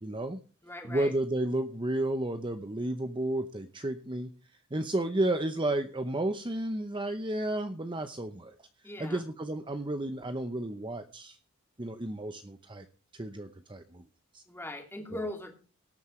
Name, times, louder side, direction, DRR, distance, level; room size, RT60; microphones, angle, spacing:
voice 1, 0.0-0.4 0.8-4.3 4.7-8.5 9.0-11.4 11.8-12.8 13.1-14.0 14.3-14.4, right 1 dB, 20° right, 7 dB, 0.8 m, -32 dB
voice 2, 0.6-1.1 8.8-9.2 14.5-15.5, left 1 dB, 10° left, 3 dB, 2.5 m, -39 dB
18.0 x 9.4 x 3.2 m, 0.37 s
head